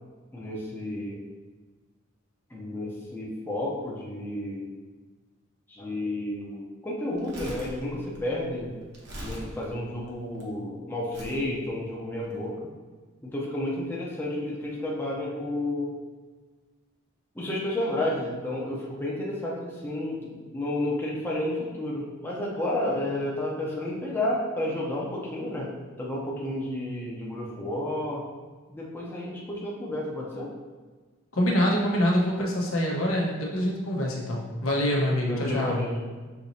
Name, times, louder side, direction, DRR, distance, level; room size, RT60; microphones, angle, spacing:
voice 1, 0.3-1.2 2.5-4.6 5.7-8.7 9.2-12.5 13.2-15.9 17.3-25.7 26.0-28.2 28.7-30.5 35.3-36.0, left 1 dB, 10° left, -5 dB, 0.7 m, -31 dB
Crumpling crinkling, 7.1-10.4 11.1-11.4 12.2-12.3, equal, 55° right, 1.0 m, -41 dB
voice 2, 31.3-35.9, equal, 75° left, -3 dB, 1.0 m, -25 dB
6.3 x 3.0 x 2.7 m, 1.4 s
head